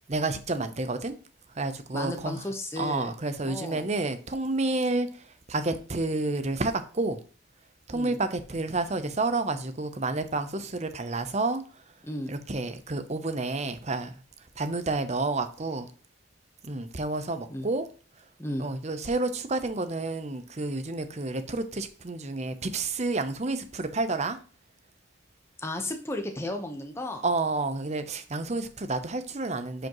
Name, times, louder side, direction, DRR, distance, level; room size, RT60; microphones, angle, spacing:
voice 1, 0.1-1.1 1.6-2.4 2.8-5.1 5.5-7.2 7.9-11.6 12.3-14.1 14.6-15.9 16.6-17.9 18.6-24.4 27.2-29.9, right 2 dB, 35° right, 10 dB, 0.7 m, -30 dB
voice 2, 1.9-3.1 3.4-3.9 7.9-8.2 12.0-12.3 17.5-17.7 18.4-18.7 25.6-27.2, left 1 dB, 15° left, 5 dB, 1.0 m, -34 dB
10.5 x 5.1 x 3.0 m, 0.40 s
head